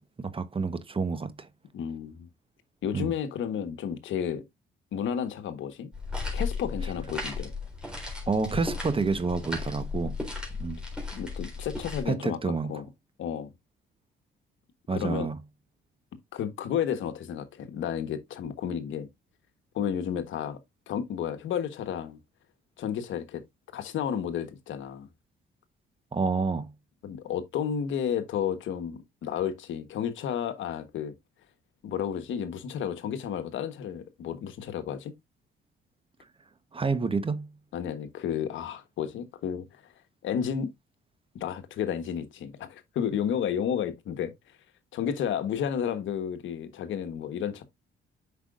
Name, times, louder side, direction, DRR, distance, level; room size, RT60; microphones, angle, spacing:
voice 1, 0.0-1.5 2.9-3.1 8.3-10.1 10.6-10.8 12.1-12.7 14.9-15.4 26.1-26.7 36.7-37.5, right 4 dB, 25° right, 1.0 m, -29 dB
voice 2, 1.7-2.3 2.8-4.4 4.9-5.9 6.3-7.5 11.1-12.9 13.2-13.5 14.9-15.3 16.3-19.1 19.7-20.6 20.9-22.2 22.8-23.4 23.7-25.1 27.0-31.1 31.8-35.1 37.7-39.9 40.2-40.7 41.3-44.6 44.9-47.6, left 8 dB, 75° left, 1.2 m, -32 dB
sound 1, 5.9-12.0, left 3 dB, 5° right, 3.7 m, -35 dB
8.1 x 5.7 x 2.4 m
cardioid pair, 90°, 20 cm